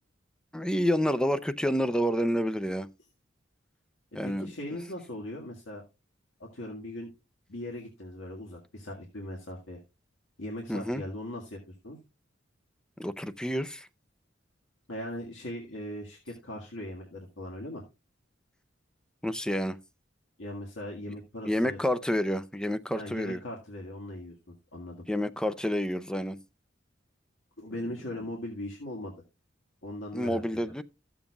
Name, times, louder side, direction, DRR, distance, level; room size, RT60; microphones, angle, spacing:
voice 1, 0.5-2.9 4.1-4.5 10.7-11.0 13.0-13.9 19.2-19.8 21.5-23.4 25.1-26.4 30.1-30.8, equal, 5° left, 0.5 m, -29 dB
voice 2, 4.2-5.8 6.4-7.1 7.5-9.8 10.4-12.0 14.9-17.8 20.4-21.8 22.9-24.4 24.7-25.0 27.6-29.1 29.8-30.8, left 1 dB, 85° left, 1.8 m, -39 dB
14.5 x 7.2 x 2.4 m
head